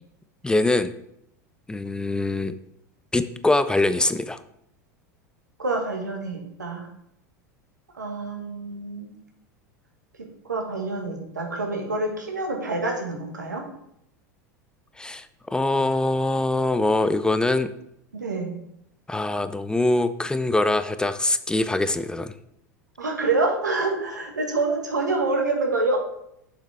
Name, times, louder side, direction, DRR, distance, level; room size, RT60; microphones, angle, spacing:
voice 1, 0.4-0.9 1.7-2.6 3.1-4.4 15.0-17.7 19.1-22.3, left 2 dB, 10° left, 12 dB, 0.4 m, -23 dB
voice 2, 5.6-6.9 7.9-9.1 10.5-13.6 18.1-18.5 23.0-26.0, right 3 dB, 90° right, 2 dB, 1.5 m, -27 dB
7.2 x 5.6 x 3.4 m, 0.76 s
hypercardioid pair, 85°, 9 cm